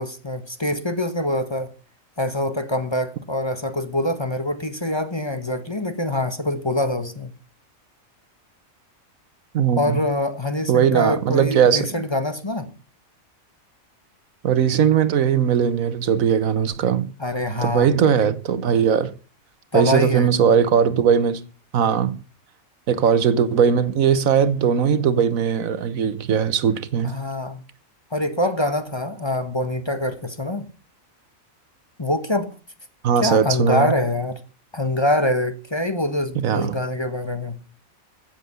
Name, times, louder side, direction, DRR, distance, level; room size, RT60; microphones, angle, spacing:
voice 1, 0.0-1.7 2.2-7.3 9.8-12.7 17.2-17.9 19.7-20.3 27.0-27.6 28.1-30.7 32.0-32.5 33.2-34.4 34.7-37.6, left 1 dB, 20° left, 1.2 m, -24 dB
voice 2, 9.5-10.0 10.7-12.0 14.4-17.1 17.6-19.1 19.7-21.4 21.7-22.2 22.9-27.1 33.0-33.9 36.3-36.8, right 7 dB, 80° right, 1.4 m, -19 dB
15.5 x 7.8 x 6.9 m
omnidirectional pair, 1.4 m